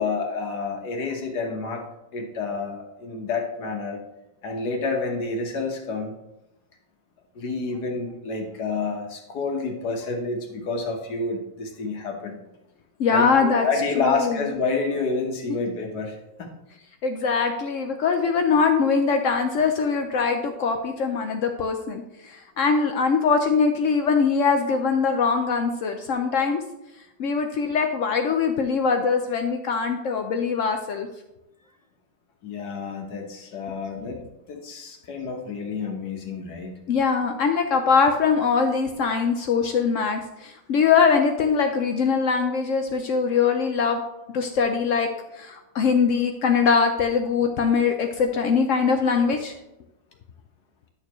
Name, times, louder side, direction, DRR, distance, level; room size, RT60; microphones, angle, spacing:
voice 1, 0.0-1.8 2.1-4.0 4.4-6.1 7.4-12.4 13.1-16.5 32.4-34.2 34.5-36.7, left 4 dB, 60° left, 2 dB, 1.7 m, -29 dB
voice 2, 13.0-13.7 14.0-14.5 17.0-26.6 27.2-31.1 36.9-44.0 44.3-45.1 45.4-49.5, left 5 dB, 85° left, 5 dB, 0.6 m, -22 dB
10.5 x 6.5 x 3.1 m, 0.91 s
omnidirectional pair, 2.1 m